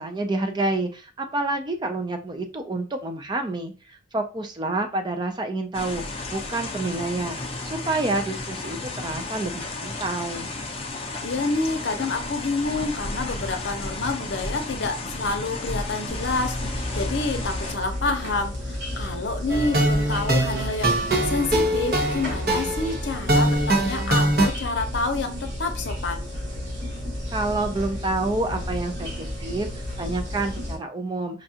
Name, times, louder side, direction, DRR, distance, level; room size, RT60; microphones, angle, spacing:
voice 1, 0.0-10.5 27.3-31.4, right 2 dB, 25° right, 6 dB, 0.4 m, -28 dB
sound 1, 5.7-17.8, left 2 dB, 30° left, 0.5 m, -33 dB
voice 2, 11.2-26.3, left 3 dB, 70° left, 7 dB, 0.7 m, -28 dB
sound 2, 16.1-30.8, left 1 dB, 75° right, 1.5 m, -32 dB
sound 3, 19.5-24.5, right 1 dB, 50° right, 0.9 m, -22 dB
5.1 x 2.3 x 2.8 m, 0.32 s
head